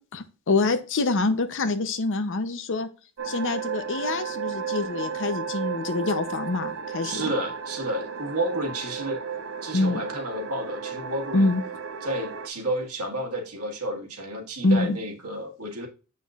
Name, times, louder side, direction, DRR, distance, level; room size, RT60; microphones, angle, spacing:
voice 1, 0.5-2.9 3.2-7.3 9.7-10.0 11.3-11.6 14.6-15.0, left 3 dB, 60° left, 0.7 m, -25 dB
sound 1, 3.2-12.5, right 7 dB, 60° right, 0.8 m, -34 dB
voice 2, 7.0-9.2 9.6-11.5 12.0-15.9, right 1 dB, 80° right, 1.7 m, -31 dB
7.5 x 5.7 x 2.4 m
head